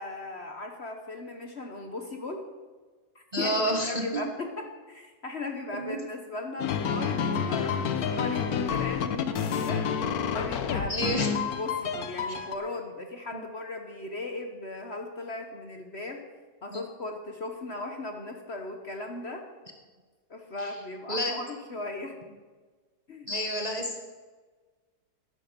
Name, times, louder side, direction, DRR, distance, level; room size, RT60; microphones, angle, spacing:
voice 1, 0.0-2.5 3.1-9.8 10.3-16.3 16.6-19.4 20.3-22.2 23.1-23.3, left 2 dB, 45° left, 4 dB, 1.1 m, -37 dB
voice 2, 3.3-4.2 5.7-6.0 10.9-11.3 16.7-16.8 20.6-20.7 21.1-21.4 23.3-24.0, equal, 25° right, 3 dB, 1.0 m, -29 dB
sound 1, 6.6-12.6, left 7 dB, 60° left, 1.2 m, -29 dB
11.0 x 10.5 x 6.6 m, 1.4 s
omnidirectional pair, 1.9 m